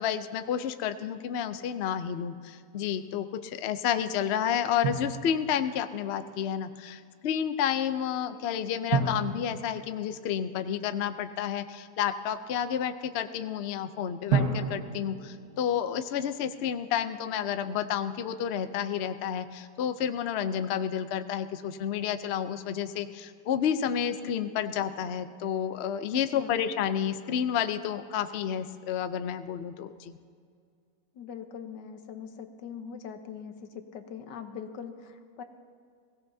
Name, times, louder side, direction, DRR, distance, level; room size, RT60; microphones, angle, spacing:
voice 1, 0.0-30.2, left 9 dB, 90° left, 10 dB, 0.5 m, -30 dB
Drum, 4.8-5.9 8.9-10.8 14.3-16.3, right 5 dB, 60° right, 1.6 m, -32 dB
voice 2, 26.1-26.6 31.1-35.4, left 7 dB, 75° left, 7 dB, 1.5 m, -42 dB
22.0 x 16.5 x 2.7 m, 2.2 s
omnidirectional pair, 1.9 m